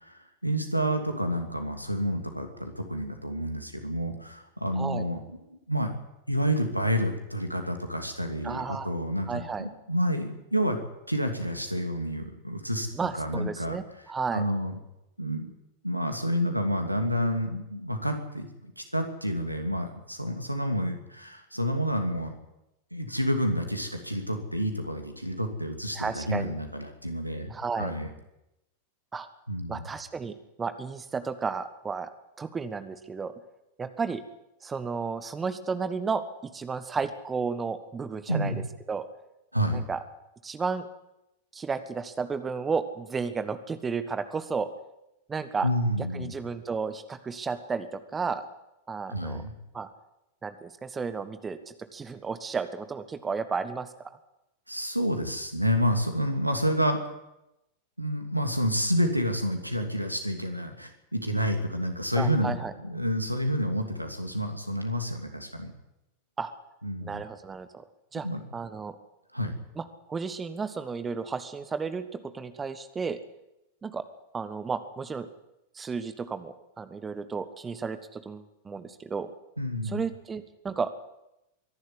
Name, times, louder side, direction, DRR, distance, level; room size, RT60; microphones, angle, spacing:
voice 1, 0.0-5.2 5.5-5.9 6.3-10.8 11.1-12.9 13.1-13.8 14.3-14.7 15.2-15.5 15.8-22.3 22.9-27.5 27.8-28.1 29.5-29.9 38.3-38.6 39.5-39.8 45.6-46.3 49.1-49.5 54.7-57.0 58.0-62.6 62.8-65.7 66.8-67.2 68.2-68.4 69.3-69.5 79.6-80.0, equal, 90° right, 5 dB, 2.6 m, -29 dB
voice 2, 4.7-5.1 8.4-8.9 9.3-9.7 12.9-14.5 25.9-26.5 27.5-27.9 29.1-29.3 29.7-32.1 32.4-33.3 33.8-34.2 34.6-39.1 39.7-40.0 40.4-40.9 41.5-44.7 45.3-45.7 46.1-48.4 48.9-49.5 49.7-49.9 50.4-53.9 62.1-62.7 66.4-66.5 67.0-67.8 68.1-68.3 68.5-69.0 69.8-73.2 73.8-74.0 74.3-75.3 75.7-79.3 79.8-80.9, right 5 dB, 15° right, 11 dB, 1.4 m, -33 dB
23.5 x 11.5 x 9.6 m, 0.90 s
figure-of-eight pair, 90°, 0 cm